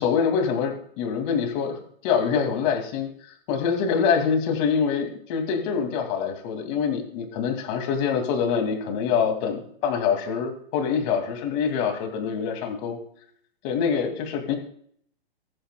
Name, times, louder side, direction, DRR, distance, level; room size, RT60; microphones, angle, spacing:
voice 1, 0.0-3.1 3.5-13.0 13.6-14.6, left 6 dB, 30° left, 4 dB, 2.2 m, -25 dB
20.0 x 10.0 x 2.2 m, 0.62 s
hypercardioid pair, 160°, 31 cm